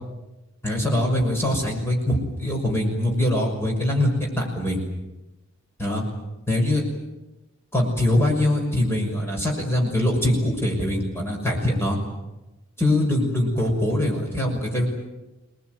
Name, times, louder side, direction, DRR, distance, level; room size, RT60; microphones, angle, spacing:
voice 1, 0.6-4.8 5.8-6.0 6.5-6.8 7.7-12.0 12.8-14.9, left 1 dB, 10° left, -1 dB, 6.1 m, -23 dB
27.5 x 20.0 x 9.5 m, 1.0 s
head